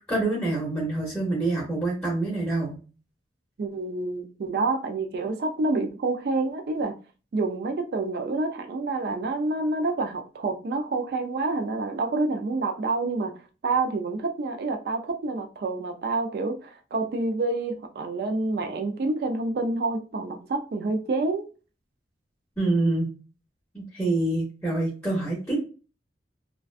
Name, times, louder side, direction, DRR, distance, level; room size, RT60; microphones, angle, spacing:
voice 1, 0.1-2.8 22.6-23.1 23.7-25.6, right 2 dB, 5° left, 0.7 m, -26 dB
voice 2, 3.6-7.0 7.3-13.4 13.6-21.5, right 3 dB, 60° right, 0.3 m, -28 dB
2.4 x 2.2 x 2.3 m
head